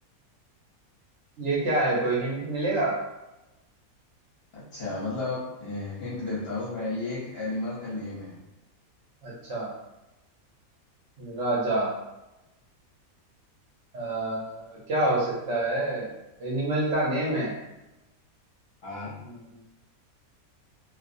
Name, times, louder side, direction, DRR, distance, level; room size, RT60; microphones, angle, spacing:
voice 1, 1.4-3.0 9.2-9.7 11.2-11.9 13.9-16.1 16.4-17.6 19.2-19.4, right 2 dB, 65° right, -5 dB, 0.8 m, -27 dB
voice 2, 4.5-8.4 18.8-19.2, left 2 dB, 55° left, -7 dB, 0.7 m, -33 dB
2.4 x 2.1 x 2.5 m, 0.99 s
omnidirectional pair, 1.5 m